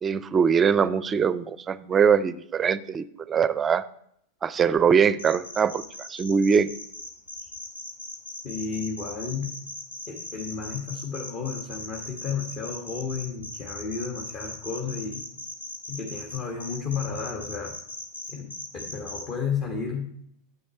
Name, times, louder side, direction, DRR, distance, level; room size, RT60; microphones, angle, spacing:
voice 1, 0.0-3.8 4.4-6.7, right 6 dB, 20° right, 17 dB, 0.5 m, -22 dB
sound 1, 5.2-19.2, left 2 dB, 80° left, 1.7 m, -38 dB
voice 2, 8.4-9.5 10.1-15.2 15.9-17.8 18.3-20.1, left 6 dB, 35° left, 1 dB, 1.4 m, -32 dB
9.6 x 8.1 x 4.4 m, 0.71 s
figure-of-eight pair, 90°, 0 cm